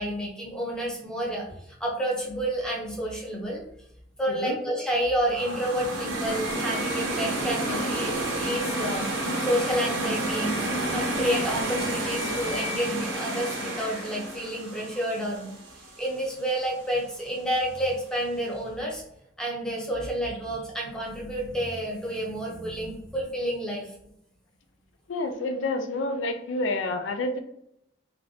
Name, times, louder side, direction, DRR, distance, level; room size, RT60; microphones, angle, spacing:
voice 1, 0.0-3.6 4.2-10.6 10.9-19.0 19.4-23.9, equal, 5° left, -3 dB, 0.7 m, -30 dB
sound 1, 5.3-16.3, right 1 dB, 90° right, 0.9 m, -30 dB
voice 2, 25.1-27.4, left 2 dB, 90° left, 6 dB, 0.5 m, -28 dB
3.1 x 2.6 x 2.7 m, 0.77 s
head